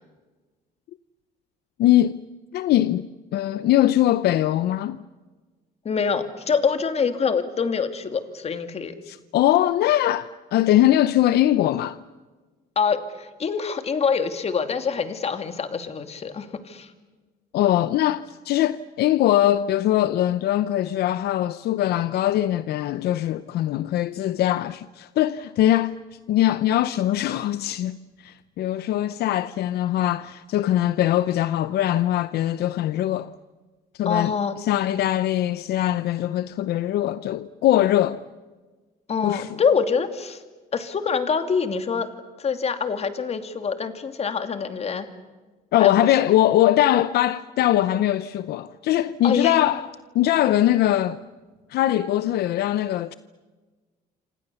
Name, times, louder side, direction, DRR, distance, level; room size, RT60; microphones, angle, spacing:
voice 1, 1.8-2.2 2.5-3.1 3.3-5.0 9.1-12.0 17.5-26.0 26.3-33.3 33.9-34.3 34.6-38.2 39.2-39.5 45.7-49.9 50.1-51.2 51.7-53.1, left 13 dB, 70° left, 0.7 m, -21 dB
voice 2, 5.8-9.0 12.8-16.9 34.0-34.6 39.1-40.4 40.7-42.1 42.4-45.1 45.7-45.9 49.2-49.6, left 6 dB, 40° left, 2.6 m, -25 dB
27.5 x 27.0 x 7.0 m
cardioid pair, 110°, 17 cm